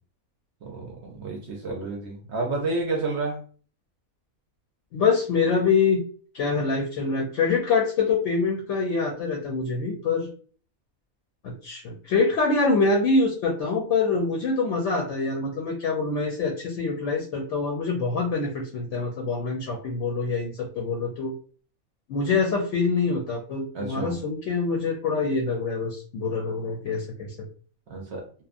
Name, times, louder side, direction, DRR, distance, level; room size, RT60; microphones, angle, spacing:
voice 1, 0.6-3.4 23.7-24.2 27.9-28.3, right 3 dB, 65° right, 0.7 m, -30 dB
voice 2, 4.9-6.0 6.3-10.3 11.4-21.3 22.1-27.3, left 4 dB, 65° left, 0.8 m, -25 dB
2.8 x 2.1 x 2.4 m
omnidirectional pair, 1.5 m